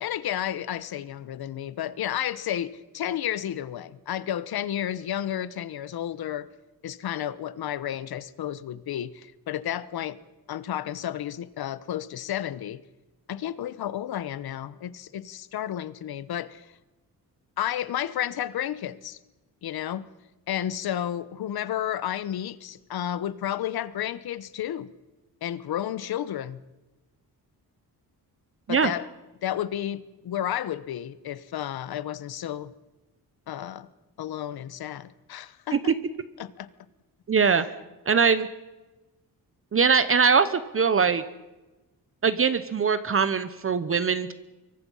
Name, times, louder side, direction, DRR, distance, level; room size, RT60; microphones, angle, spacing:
voice 1, 0.0-6.5 6.8-10.2 10.5-12.8 13.3-16.7 17.6-19.2 19.6-20.1 20.5-24.9 25.4-26.6 28.7-29.1 29.4-32.7 33.5-33.9 34.2-35.9 36.4-36.7 37.4-37.5, left 11 dB, 75° left, 1.1 m, -32 dB
voice 2, 37.3-37.6 38.1-38.5 39.7-41.2 42.2-44.3, right 5 dB, 35° right, 0.9 m, -22 dB
26.5 x 23.5 x 5.6 m
wide cardioid pair, 160°, 38 cm